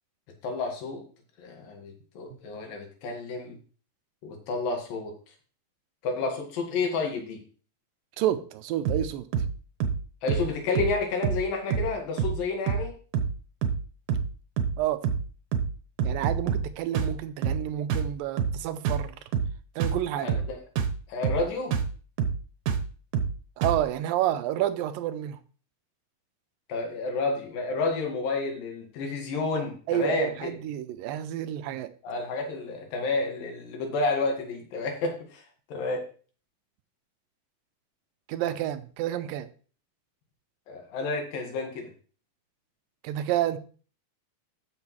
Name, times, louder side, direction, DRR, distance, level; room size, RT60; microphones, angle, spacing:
voice 1, 0.4-1.0 1.4-3.6 4.2-5.1 6.0-7.4 10.2-12.9 20.2-20.6 21.1-21.7 26.7-30.6 32.0-35.4 35.7-36.1 40.7-41.9, left 3 dB, 75° left, 3.5 m, -30 dB
voice 2, 8.2-9.3 14.8-15.0 16.0-19.2 19.8-20.3 23.6-25.4 29.9-31.9 38.3-39.5 43.0-43.6, right 12 dB, 85° right, 2.3 m, -29 dB
sound 1, 8.9-9.1 9.3-9.5 9.8-10.0 10.3-10.5 10.8-11.0 11.2-11.5 11.7-11.9 12.2-12.4 12.7-12.9 13.1-13.4 13.6-13.8 14.1-14.3 14.6-14.8 15.0-15.3 15.5-15.7 16.0-16.7 16.9-17.2 17.4-17.6 17.9-18.1 18.4-18.6 18.9-19.1 19.3-19.5 19.8-20.0 20.3-20.5 20.8-21.0 21.2-21.5 21.7-21.9 22.2-22.4 22.7-22.9 23.1-23.4 23.6-23.8, right 7 dB, 70° right, 2.2 m, -27 dB
13.0 x 6.2 x 3.1 m
omnidirectional pair, 4.0 m